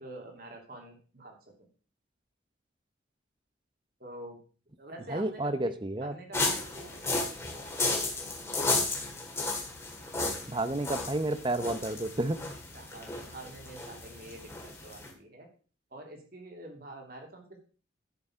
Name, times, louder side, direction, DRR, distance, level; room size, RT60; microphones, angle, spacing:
voice 1, 0.0-1.5 4.0-4.4 4.8-5.7 6.0-7.0 12.7-15.5 15.9-17.6, right 1 dB, 50° right, 2 dB, 2.9 m, -46 dB
voice 2, 5.1-6.1 10.5-12.4, right 1 dB, 25° right, 12 dB, 0.8 m, -31 dB
sound 1, 6.3-15.1, left 3 dB, 15° left, 2.0 m, -34 dB
11.0 x 6.9 x 5.0 m, 0.38 s
head